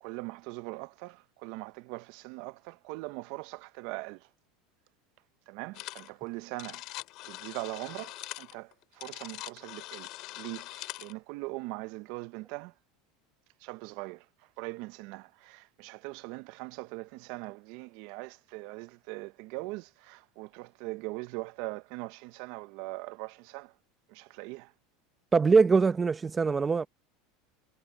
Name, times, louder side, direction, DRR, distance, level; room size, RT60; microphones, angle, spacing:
voice 1, 0.0-4.2 5.5-6.8 7.3-10.1 10.4-12.7 13.6-14.2 14.6-23.7 24.1-24.7, right 23 dB, 55° right, 0.5 m, -41 dB
sound 1, 5.7-6.1 6.4-11.1, left 19 dB, 45° left, 4.2 m, -43 dB
voice 2, 25.3-26.9, right 4 dB, 15° right, 0.8 m, -23 dB
supercardioid pair, 160°, 0 cm